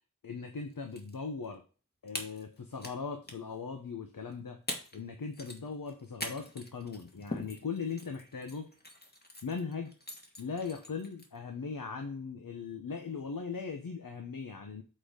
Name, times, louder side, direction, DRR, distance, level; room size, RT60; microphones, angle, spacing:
voice 1, 0.2-1.6 2.0-4.6 4.9-8.7 9.4-9.9 10.4-14.8, left 5 dB, 90° left, 5 dB, 1.0 m, -39 dB
sound 1, 0.7-1.1 1.4-1.5 2.1-3.0 3.2-3.5 4.3-4.4 4.7-5.0 5.3-11.4, left 1 dB, 30° left, 1.8 m, -43 dB
7.7 x 4.3 x 5.1 m, 0.36 s
wide cardioid pair, 60°, 33 cm